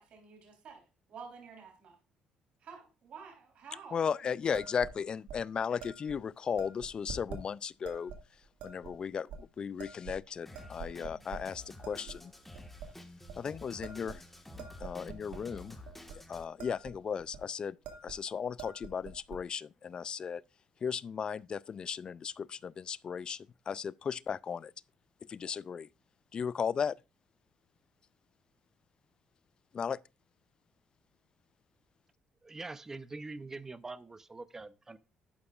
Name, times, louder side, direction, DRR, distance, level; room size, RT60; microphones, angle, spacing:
voice 1, 0.0-2.0 2.6-4.0, right 6 dB, 60° right, 3.6 m, -50 dB
voice 2, 3.9-8.1 8.6-12.3 13.4-14.2 14.5-15.8 16.3-17.8 18.0-20.4 20.8-24.7 25.3-25.9 26.3-27.0 29.7-30.0, left 7 dB, 40° left, 0.3 m, -36 dB
sound 1, 4.5-5.0 5.3-5.4 5.8-6.2 6.6-7.4 7.9-8.2 8.6-8.9 9.3-9.4 9.8-10.3 10.5-11.4 11.8-12.2 12.5-12.9 13.3-13.4 13.8-15.4 15.9-16.2 16.4-16.9 17.2-17.4 17.9-18.2 18.5-19.4, right 6 dB, 80° right, 1.9 m, -46 dB
Drum kit, 10.5-16.4, left 1 dB, 5° left, 1.5 m, -51 dB
voice 3, 32.4-35.0, right 3 dB, 20° right, 0.7 m, -44 dB
11.5 x 8.6 x 2.4 m
cardioid pair, 110°, 2 cm